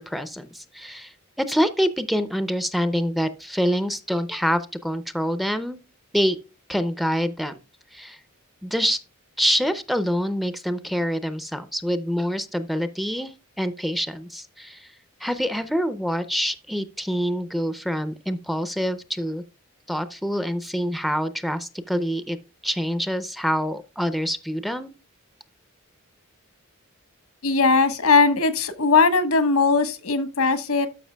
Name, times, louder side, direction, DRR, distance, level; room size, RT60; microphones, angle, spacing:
voice 1, 0.0-5.8 6.1-6.4 6.7-7.6 7.9-8.2 8.6-9.0 9.4-14.9 15.2-19.4 19.9-22.4 22.6-24.9, equal, ahead, 0.5 m, -26 dB
voice 2, 27.4-30.9, left 4 dB, 80° left, 1.4 m, -19 dB
12.5 x 5.8 x 2.2 m
head